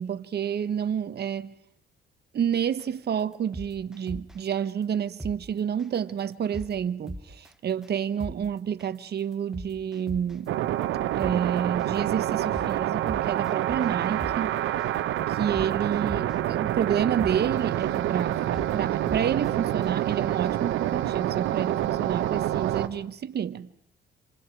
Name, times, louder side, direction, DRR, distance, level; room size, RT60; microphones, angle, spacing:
voice 1, 0.0-1.5 2.3-10.5 11.1-14.6 15.3-23.7, right 8 dB, 55° right, 1.3 m, -29 dB
sound 1, 2.8-3.0 3.3-4.5 4.8-4.9 5.2-5.3 5.8-6.0 6.3-6.7 7.1-7.5 7.8-7.9 8.2-8.3 8.8-9.0 9.3-10.5 10.8-10.9 11.2-11.3 11.8-12.0 12.3-12.7 13.1-13.9 14.2-14.3 14.8-15.0 15.3-16.5 16.8-16.9 17.2-17.3 17.8-18.0 18.3-18.7 19.1-19.5 19.8-19.9, equal, 5° right, 1.1 m, -38 dB
sound 2, 10.5-22.9, right 13 dB, 85° right, 1.3 m, -27 dB
28.0 x 27.5 x 4.8 m
cardioid pair, 90°, 20 cm